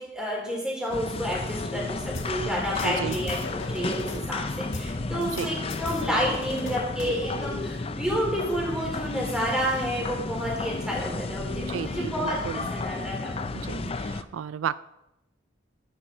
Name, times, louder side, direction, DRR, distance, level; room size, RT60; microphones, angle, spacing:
voice 1, 0.0-3.4 3.7-13.4, equal, 5° right, -4 dB, 4.6 m, -30 dB
sound 1, 0.9-14.2, left 3 dB, 30° left, 0.5 m, -33 dB
sound 2, 2.1-4.2 4.7-7.2, left 2 dB, 80° left, 1.7 m, -38 dB
voice 2, 2.8-3.2 5.3-5.5 11.6-12.7 13.6-14.8, right 8 dB, 90° right, 16 dB, 0.3 m, -33 dB
12.5 x 10.0 x 4.3 m, 0.89 s
head